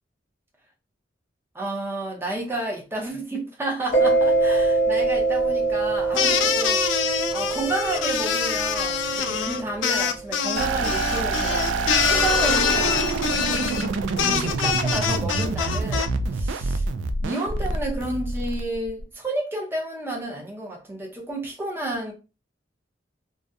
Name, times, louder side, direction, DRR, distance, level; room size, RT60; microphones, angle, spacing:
voice 1, 1.5-6.8 7.3-11.7 12.0-13.0 13.3-13.9 14.2-16.9 17.2-22.1, right 2 dB, 10° right, 0.6 m, -31 dB
Mallet percussion, 3.9-10.3, right 3 dB, 45° left, 0.6 m, -24 dB
sound 1, 6.1-16.1, left 7 dB, 80° left, 0.4 m, -25 dB
sound 2, 10.6-19.0, right 3 dB, 80° right, 0.3 m, -26 dB
2.4 x 2.1 x 2.6 m
head